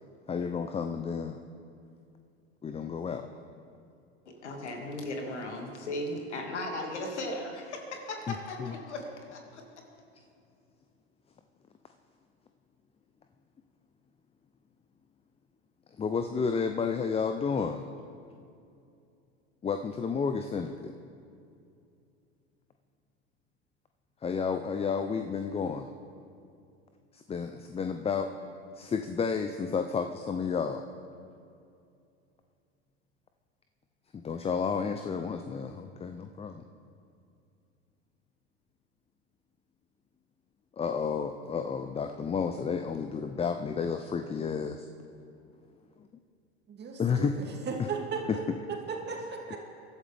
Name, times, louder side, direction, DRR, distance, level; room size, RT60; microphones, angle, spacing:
voice 1, 0.3-1.4 2.6-3.3 8.3-8.4 8.6-8.7 16.0-17.8 19.6-20.9 24.2-25.9 27.1-28.3 28.8-30.9 34.1-36.6 40.8-44.9 47.0-47.3, left 6 dB, 20° left, 7 dB, 0.6 m, -31 dB
voice 2, 4.3-9.6, left 1 dB, 85° left, 2 dB, 2.2 m, -37 dB
voice 3, 46.7-48.4 48.7-49.6, right 5 dB, 30° right, 0 dB, 2.6 m, -36 dB
23.0 x 12.5 x 3.5 m, 2.6 s
hypercardioid pair, 85°, 34 cm